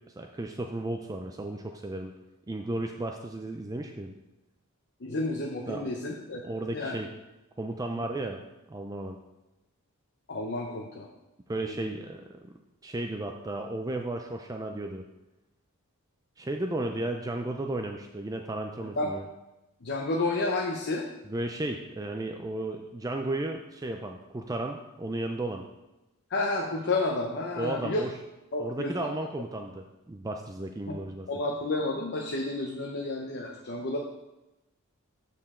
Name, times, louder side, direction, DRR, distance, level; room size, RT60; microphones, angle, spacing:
voice 1, 0.1-2.1 2.5-4.1 5.7-5.9 6.4-7.1 7.6-8.4 8.7-9.2 11.5-12.5 12.8-15.0 16.4-19.3 21.2-25.6 27.6-28.2 28.6-31.3, right 2 dB, 15° right, 4 dB, 0.4 m, -34 dB
voice 2, 5.0-6.4 6.7-7.0 10.3-11.1 19.0-19.1 19.8-21.1 26.3-28.0 28.5-29.1 30.9-31.0 31.3-34.0, left 2 dB, 50° left, 1 dB, 0.7 m, -30 dB
7.7 x 6.6 x 3.7 m, 0.98 s
head